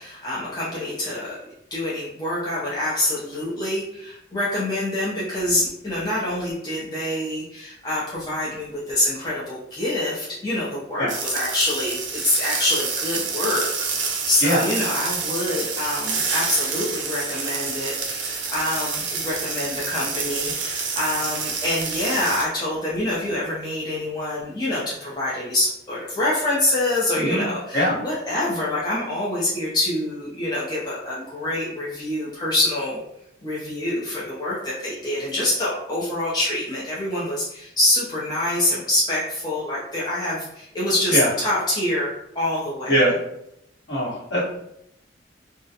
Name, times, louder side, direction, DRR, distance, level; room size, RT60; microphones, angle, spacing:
voice 1, 0.0-1.4 1.7-13.7 14.0-33.0 33.4-43.0, left 1 dB, 20° left, -8 dB, 0.5 m, -26 dB
sound 1, 11.1-22.5, right 5 dB, 75° right, 0.5 m, -28 dB
voice 2, 43.9-44.4, equal, 60° left, -8 dB, 1.1 m, -21 dB
2.3 x 2.1 x 2.7 m, 0.78 s
head